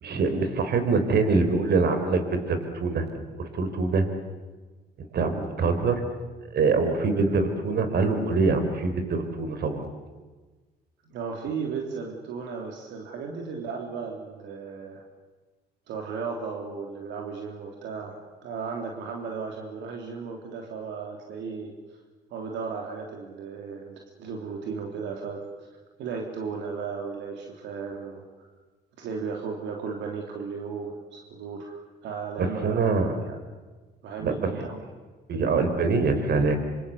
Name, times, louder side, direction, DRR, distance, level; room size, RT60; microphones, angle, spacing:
voice 1, 0.0-3.1 3.4-4.1 5.1-6.0 6.5-9.8 32.4-33.1 34.2-34.5 35.3-36.6, right 4 dB, 60° right, 8 dB, 4.4 m, -24 dB
voice 2, 11.1-15.0 15.9-22.0 22.3-25.5 26.0-28.5 29.0-33.4 34.0-34.9, right 5 dB, 80° right, 1 dB, 3.4 m, -35 dB
26.0 x 25.5 x 8.2 m, 1.3 s
cardioid pair, 80°, 18 cm